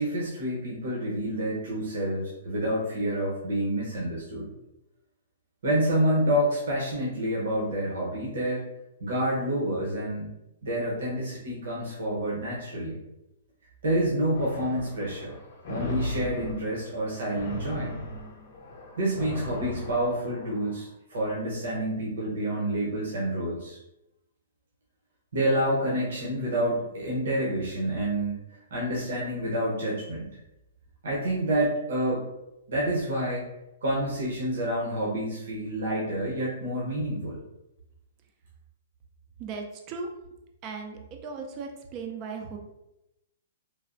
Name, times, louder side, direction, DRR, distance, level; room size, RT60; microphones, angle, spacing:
voice 1, 0.0-4.5 5.6-8.6 9.0-10.3 10.6-13.0 13.8-15.3 15.7-17.9 19.0-23.8 25.3-28.4 28.7-30.3 31.0-32.2 32.7-33.5 33.8-37.4, right 1 dB, 75° right, -5 dB, 0.8 m, -28 dB
sound 1, 14.3-20.8, left 1 dB, 40° left, 0.5 m, -37 dB
voice 2, 39.4-40.1 40.6-42.6, right 4 dB, 25° right, 3 dB, 0.3 m, -37 dB
3.2 x 2.0 x 2.5 m, 0.90 s
hypercardioid pair, 165°, 0 cm